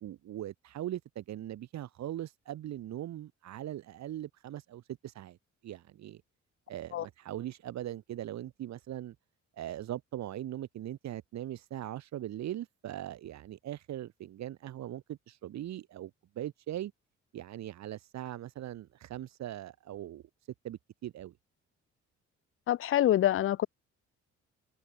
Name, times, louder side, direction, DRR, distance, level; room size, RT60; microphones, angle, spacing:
voice 1, 0.0-5.4 5.6-6.2 6.7-9.2 9.6-16.9 17.3-20.2 20.6-21.3, right 12 dB, 65° right, 1.0 m, -40 dB
voice 2, 22.7-23.7, left 12 dB, 45° left, 0.4 m, -26 dB
cardioid pair, 90°, 30 cm